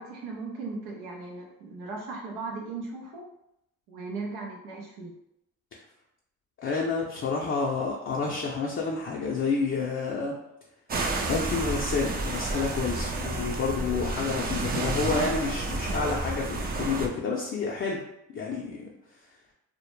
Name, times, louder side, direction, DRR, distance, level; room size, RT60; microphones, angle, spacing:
voice 1, 0.0-3.2 3.9-5.1, right 3 dB, 85° right, -1 dB, 0.6 m, -37 dB
voice 2, 6.6-10.4 11.3-18.0 18.3-18.9, left 4 dB, 35° left, -3 dB, 0.4 m, -29 dB
sound 1, 10.9-17.1, right 2 dB, 25° right, 0.4 m, -30 dB
2.1 x 2.0 x 3.0 m, 0.81 s
supercardioid pair, 70°, 37 cm